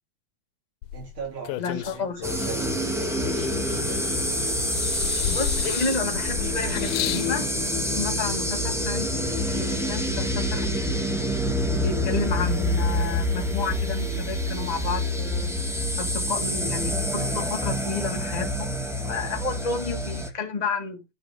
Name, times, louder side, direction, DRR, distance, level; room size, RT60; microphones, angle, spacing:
sound 1, 0.8-2.6 3.2-4.3 4.7-7.3 8.2-8.3, left 13 dB, 90° left, 2.2 m, -33 dB
voice 1, 0.9-4.1, right 4 dB, 70° right, 5.0 m, -39 dB
voice 2, 1.6-2.2 2.6-2.7 5.3-7.5 7.9-9.1 9.4-11.1 11.8-15.6 16.0-18.7 19.0-21.0, left 4 dB, 20° left, 1.1 m, -31 dB
sound 2, 2.2-20.3, equal, 5° right, 0.4 m, -27 dB
10.5 x 6.4 x 3.6 m
omnidirectional pair, 3.5 m